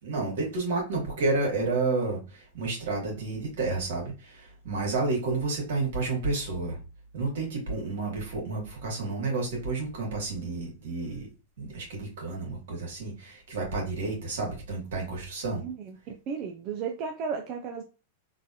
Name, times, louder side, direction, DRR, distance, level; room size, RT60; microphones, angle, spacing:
voice 1, 0.0-6.8 7.1-11.3 11.6-15.6, right 3 dB, 75° right, -1 dB, 1.9 m, -30 dB
voice 2, 15.6-17.8, right 6 dB, 40° right, 3 dB, 0.4 m, -34 dB
3.8 x 2.5 x 2.8 m, 0.33 s
supercardioid pair, 145°, 0 cm